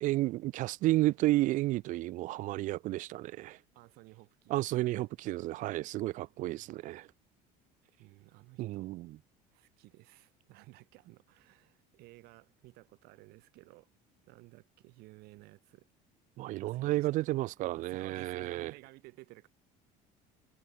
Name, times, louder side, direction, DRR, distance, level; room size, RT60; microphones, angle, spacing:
voice 1, 0.0-3.6 4.5-7.1 8.6-9.2 16.4-18.7, right 17 dB, 50° right, 0.6 m, -32 dB
voice 2, 3.7-5.0 6.5-6.9 8.0-9.0 9.5-13.9 14.2-15.9 16.6-17.1 17.6-19.5, right 22 dB, 70° right, 6.8 m, -55 dB
cardioid pair, 160°, 17 cm